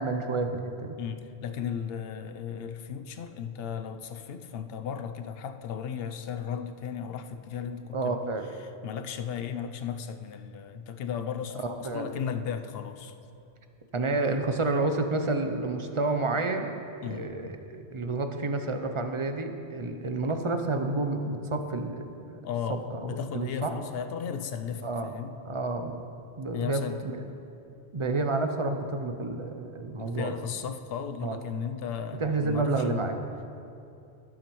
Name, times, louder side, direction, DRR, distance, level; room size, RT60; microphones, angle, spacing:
voice 1, 0.0-1.0 7.9-8.5 11.5-12.1 13.9-16.7 17.0-22.4 22.9-23.1 23.3-23.7 24.8-25.1 25.4-26.0 26.4-27.2 27.9-30.3 31.2-31.4 32.2-33.2, right 3 dB, 35° right, 6 dB, 0.5 m, -30 dB
voice 2, 1.0-8.2 8.6-13.1 17.0-17.3 22.4-25.4 26.5-27.0 30.0-33.0, left 7 dB, 65° left, 8 dB, 0.8 m, -35 dB
17.0 x 7.3 x 3.1 m, 2.6 s
omnidirectional pair, 1.1 m